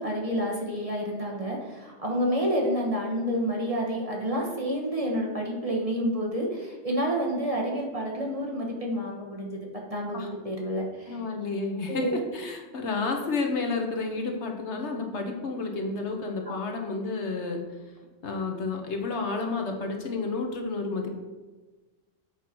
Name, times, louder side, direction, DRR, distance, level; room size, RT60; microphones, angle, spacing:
voice 1, 0.0-9.6 9.9-11.1 11.9-12.1 16.5-16.6, equal, 30° right, -1 dB, 1.4 m, -29 dB
voice 2, 11.1-17.6 18.2-21.1, left 3 dB, 65° left, 3 dB, 1.3 m, -31 dB
7.7 x 4.5 x 6.1 m, 1.2 s
omnidirectional pair, 1.3 m